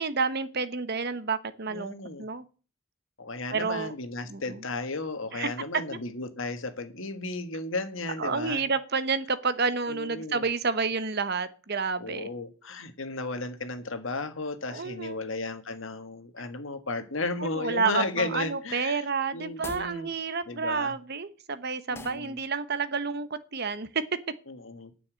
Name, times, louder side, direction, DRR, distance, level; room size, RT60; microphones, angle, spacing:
voice 1, 0.0-2.4 3.5-3.9 4.3-4.6 5.3-5.5 8.2-12.3 14.7-15.2 17.4-24.0, right 4 dB, 50° right, 1.0 m, -30 dB
voice 2, 1.7-2.3 3.2-8.6 9.9-10.5 12.0-19.0 19.3-20.1 20.5-20.9 21.9-22.4 24.5-24.9, left 3 dB, 65° left, 1.7 m, -34 dB
sound 1, 19.5-20.0 21.9-22.3, left 2 dB, 10° left, 0.8 m, -42 dB
9.7 x 7.1 x 8.1 m
head